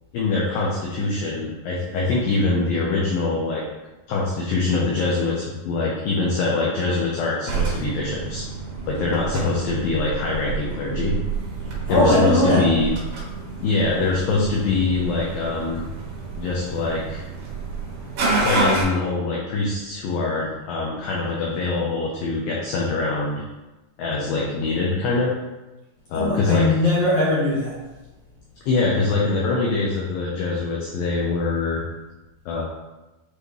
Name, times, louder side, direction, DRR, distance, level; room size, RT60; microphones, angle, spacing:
voice 1, 0.1-3.6 4.1-8.5 8.9-11.2 11.9-12.9 13.6-15.8 16.4-17.3 18.4-23.4 24.0-25.3 26.1-26.6 28.7-31.8 32.5-32.6, left 3 dB, 75° left, -3 dB, 2.2 m, -23 dB
sound 1, 7.5-18.8, right 4 dB, 60° right, 2.0 m, -29 dB
voice 2, 11.9-12.7 26.1-27.8, left 1 dB, 60° left, -8 dB, 2.0 m, -19 dB
8.1 x 4.1 x 3.1 m, 1.1 s
omnidirectional pair, 4.9 m